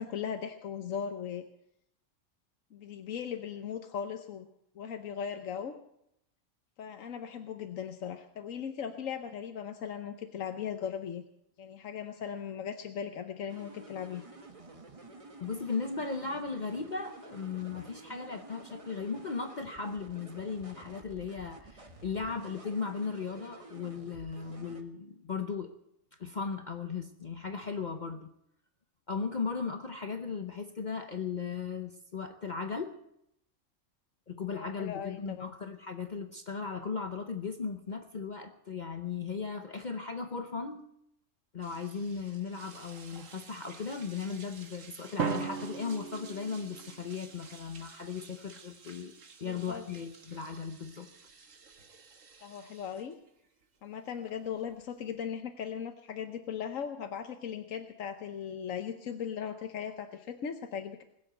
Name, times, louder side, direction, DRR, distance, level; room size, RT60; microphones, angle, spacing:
voice 1, 0.0-1.4 2.7-4.5 4.7-5.7 6.8-11.2 11.6-14.2 34.5-35.5 49.4-49.8 52.4-53.1 53.8-61.0, left 8 dB, 90° left, 7 dB, 1.3 m, -38 dB
sound 1, 13.5-24.8, right 2 dB, 25° right, 1.4 m, -51 dB
voice 2, 15.4-25.7 26.2-28.3 29.1-33.0 34.3-40.8 41.5-49.1 49.4-51.1, left 5 dB, 40° left, 6 dB, 0.9 m, -37 dB
sound 2, 41.6-55.1, right 5 dB, 80° right, 1.8 m, -54 dB
Drum, 45.2-47.2, right 6 dB, 60° right, 1.2 m, -36 dB
20.5 x 7.8 x 8.0 m, 0.77 s
omnidirectional pair, 1.3 m